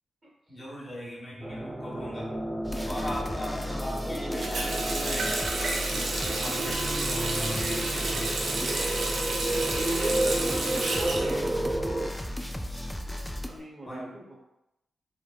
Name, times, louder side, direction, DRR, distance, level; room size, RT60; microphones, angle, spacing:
voice 1, 0.5-2.3 2.8-5.5 5.9-8.3 13.8-14.1, left 1 dB, 35° left, -4 dB, 1.1 m, -39 dB
sound 1, 1.4-12.1, right 1 dB, 20° right, 0.8 m, -32 dB
sound 2, 2.6-13.5, left 1 dB, 10° left, 0.3 m, -36 dB
voice 2, 4.0-4.5 9.6-11.4 13.5-14.4, right 1 dB, 45° right, -3 dB, 0.9 m, -37 dB
Water tap faucet, 4.4-12.2 12.5-13.5, right 2 dB, 75° right, 0.5 m, -31 dB
3.3 x 2.0 x 2.3 m, 0.88 s
supercardioid pair, 45°, 0 cm